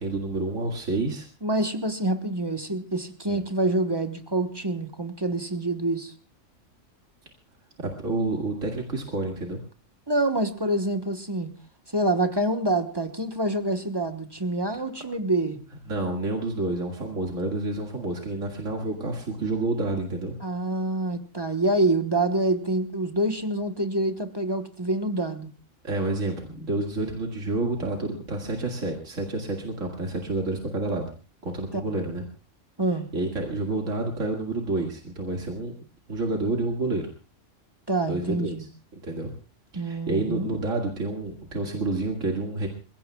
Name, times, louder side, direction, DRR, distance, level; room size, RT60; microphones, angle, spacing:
voice 1, 0.0-1.3 3.3-3.4 7.8-9.6 15.9-20.4 25.8-31.1 31.4-32.2 33.1-35.7 36.1-37.1 38.1-38.5 38.9-39.3 39.7-42.7, right 2 dB, 85° right, 0 dB, 2.4 m, -29 dB
voice 2, 1.4-6.1 10.1-11.5 11.9-15.6 20.4-25.5 31.7-31.8 32.8-33.1 37.9-38.6 39.7-40.5, right 2 dB, 20° right, 7 dB, 1.1 m, -26 dB
27.5 x 16.5 x 2.3 m, 0.36 s
omnidirectional pair, 1.3 m